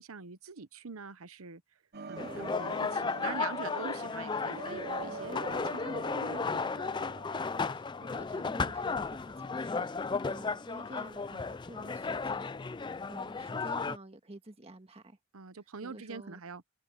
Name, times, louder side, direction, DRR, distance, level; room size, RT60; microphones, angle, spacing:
voice 1, 0.0-1.6 2.1-6.7 15.3-16.8, right 5 dB, 80° right, 0.9 m, -44 dB
sound 1, 1.9-7.7, right 5 dB, 45° right, 0.8 m, -44 dB
sound 2, 2.2-14.0, left 4 dB, 20° left, 0.3 m, -34 dB
voice 2, 7.4-9.9 10.3-12.8 13.1-15.2 15.8-16.4, right 1 dB, 30° right, 1.7 m, -50 dB
head